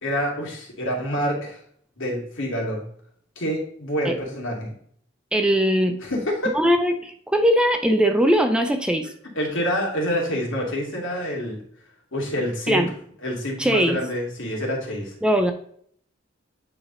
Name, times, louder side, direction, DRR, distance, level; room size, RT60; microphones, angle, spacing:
voice 1, 0.0-1.6 2.0-2.8 3.4-4.7 6.0-6.5 9.0-9.1 9.3-11.6 12.1-12.8 13.2-15.1, equal, 80° left, -1 dB, 2.2 m, -27 dB
voice 2, 5.3-6.0 6.5-9.1 12.7-12.9 13.6-14.0 15.2-15.5, equal, 5° right, 6 dB, 0.4 m, -20 dB
9.0 x 3.4 x 3.8 m, 0.62 s
head